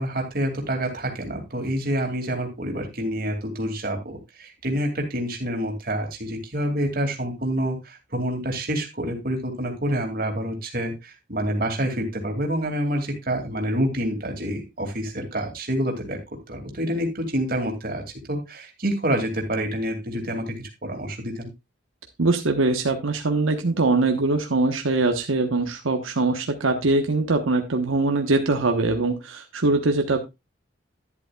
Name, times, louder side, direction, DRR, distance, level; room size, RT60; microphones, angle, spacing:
voice 1, 0.0-16.2 16.5-18.0 18.3-20.6 20.8-21.5, right 1 dB, 45° right, 2 dB, 2.5 m, -27 dB
voice 2, 22.2-30.2, right 3 dB, 90° right, 4 dB, 1.2 m, -22 dB
11.0 x 10.5 x 2.4 m, 0.22 s
head